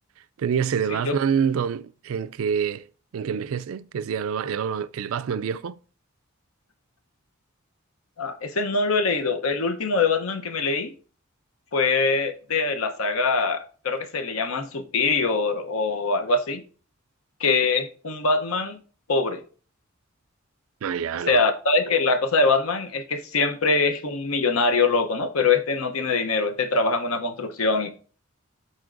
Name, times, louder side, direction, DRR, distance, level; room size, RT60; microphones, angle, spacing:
voice 1, 0.4-2.8 3.1-5.8 20.8-21.4, right 7 dB, 75° right, 0.4 m, -26 dB
voice 2, 8.2-10.9 11.7-16.6 17.4-18.8 19.1-19.4 21.3-27.9, left 3 dB, 85° left, 0.8 m, -23 dB
12.5 x 4.3 x 2.5 m
head